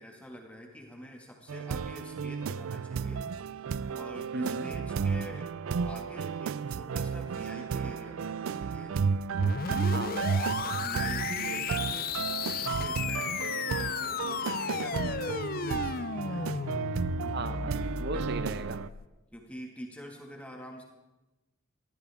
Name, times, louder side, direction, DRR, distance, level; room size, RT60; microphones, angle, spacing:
voice 1, 0.0-3.3 3.9-5.5 5.9-9.0 10.6-12.1 12.5-16.7 18.1-18.3 19.3-20.8, equal, 5° left, 0 dB, 1.9 m, -46 dB
sound 1, 1.5-18.9, right 6 dB, 80° right, 0.4 m, -33 dB
voice 2, 4.3-4.7 9.7-10.3 17.2-18.8, right 2 dB, 50° right, 11 dB, 0.8 m, -37 dB
sound 2, 9.4-19.1, left 7 dB, 45° left, 0.4 m, -35 dB
19.5 x 14.0 x 3.6 m, 1.1 s
head